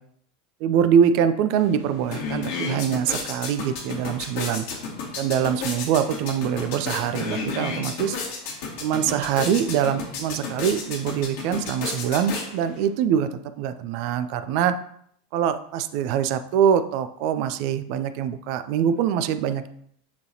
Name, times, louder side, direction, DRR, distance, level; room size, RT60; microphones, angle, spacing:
voice 1, 0.6-4.7 5.2-8.2 8.8-13.3 13.6-14.8 15.3-19.7, right 8 dB, 50° right, 11 dB, 0.5 m, -23 dB
sound 1, 1.6-1.7 1.9-12.9, left 4 dB, 60° left, 1.9 m, -32 dB
9.5 x 3.9 x 2.8 m, 0.67 s
figure-of-eight pair, 80°, 0 cm